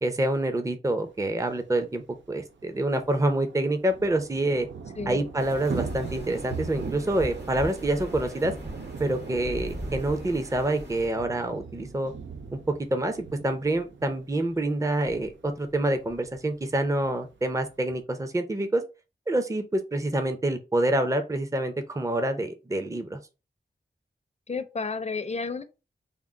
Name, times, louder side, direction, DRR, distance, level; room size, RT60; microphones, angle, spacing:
voice 1, 0.0-4.7 5.1-8.5 9.0-12.1 12.5-12.6 12.9-18.8 19.3-23.2, right 1 dB, 15° right, 0.5 m, -27 dB
Thunder / Rain, 1.4-1.5 1.7-1.8 2.1-18.0, right 5 dB, 85° right, 0.5 m, -41 dB
sound 1, 5.4-11.1, right 1 dB, 65° right, 1.5 m, -39 dB
voice 2, 24.5-25.6, left 4 dB, 35° left, 0.5 m, -31 dB
3.6 x 2.0 x 3.8 m
wide cardioid pair, 55°, 19 cm